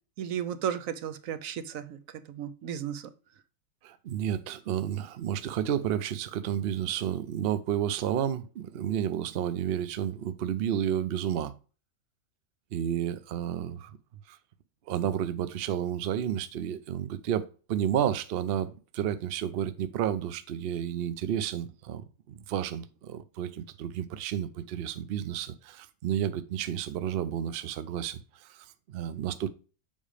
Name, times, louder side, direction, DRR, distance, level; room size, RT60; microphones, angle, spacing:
voice 1, 0.2-2.0 2.3-3.1, right 9 dB, 80° right, 1.1 m, -34 dB
voice 2, 3.8-11.5 12.7-14.0 14.3-14.4 14.9-29.5, right 10 dB, 55° right, 0.7 m, -31 dB
7.3 x 5.0 x 3.3 m
omnidirectional pair, 1.4 m